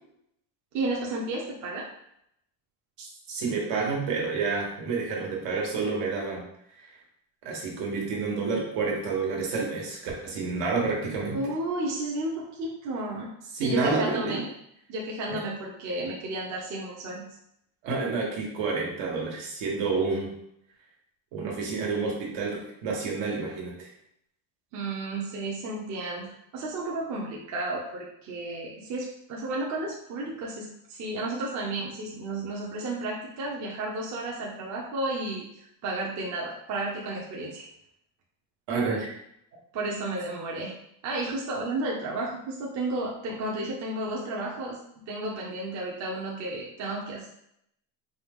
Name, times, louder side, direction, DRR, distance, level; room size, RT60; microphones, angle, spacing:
voice 1, 0.7-1.9 11.3-13.3 13.6-14.5 14.9-17.2 24.7-35.4 35.8-37.7 39.7-40.7 41.0-44.8 45.1-47.3, right 2 dB, 40° right, -3 dB, 0.7 m, -32 dB
voice 2, 3.0-6.4 7.4-11.4 13.5-14.4 15.3-15.4 17.8-20.3 21.3-23.9 38.7-39.1, right 4 dB, 75° right, -2 dB, 1.5 m, -29 dB
4.7 x 2.4 x 3.6 m, 0.75 s
cardioid pair, 170°, 45 cm